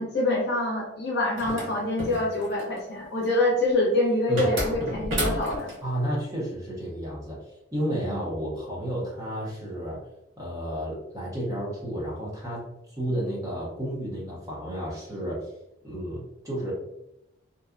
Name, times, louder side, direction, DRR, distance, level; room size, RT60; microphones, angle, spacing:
voice 1, 0.0-5.7, left 1 dB, 55° left, -2 dB, 0.7 m, -25 dB
sound 1, 1.4-2.8 4.4-5.8, equal, 80° right, 1.3 m, -31 dB
voice 2, 5.8-7.4 7.7-10.0 10.4-15.5 15.8-16.7, equal, 15° right, -5 dB, 0.6 m, -31 dB
2.7 x 2.2 x 2.4 m, 0.85 s
head